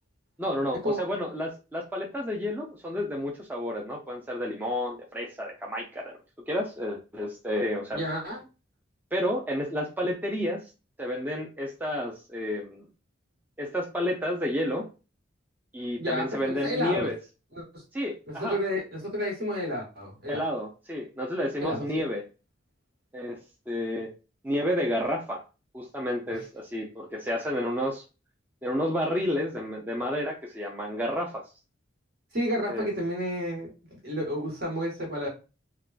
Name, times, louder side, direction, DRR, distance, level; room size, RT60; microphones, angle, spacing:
voice 1, 0.4-6.2 6.5-8.0 9.1-10.6 11.0-12.8 13.6-14.9 15.7-17.2 17.9-18.6 20.3-22.2 23.1-23.4 23.7-24.1 24.4-25.4 25.7-28.0 28.6-31.4 32.7-32.9, left 1 dB, 10° right, -1 dB, 0.4 m, -30 dB
voice 2, 7.9-8.4 16.0-17.1 17.5-17.8 18.3-20.4 21.6-22.0 32.3-33.7 34.0-35.3, equal, 55° right, -1 dB, 1.3 m, -31 dB
3.5 x 2.2 x 2.3 m, 0.31 s
head